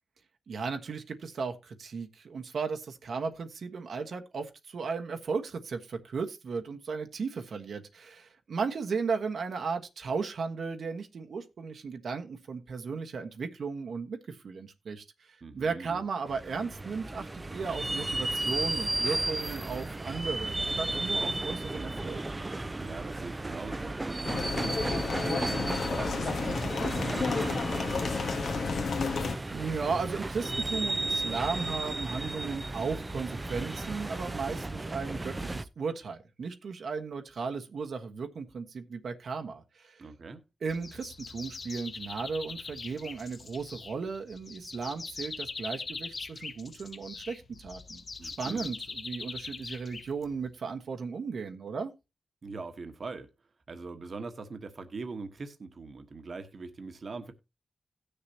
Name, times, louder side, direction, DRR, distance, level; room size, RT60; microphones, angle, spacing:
voice 1, 0.5-22.2 29.5-40.0 40.6-51.9, right 5 dB, 75° right, 1.3 m, -35 dB
voice 2, 15.4-16.0 22.8-24.0 24.3-27.7 40.0-40.4 48.2-48.7 52.4-53.3 53.7-57.3, right 3 dB, 50° right, 1.3 m, -42 dB
sound 1, 16.3-35.6, right 2 dB, 20° right, 0.5 m, -34 dB
sound 2, 24.2-29.4, left 4 dB, 80° left, 1.5 m, -31 dB
sound 3, 40.7-50.5, left 4 dB, 45° left, 0.6 m, -42 dB
17.5 x 6.7 x 2.8 m
wide cardioid pair, 140°, 0 cm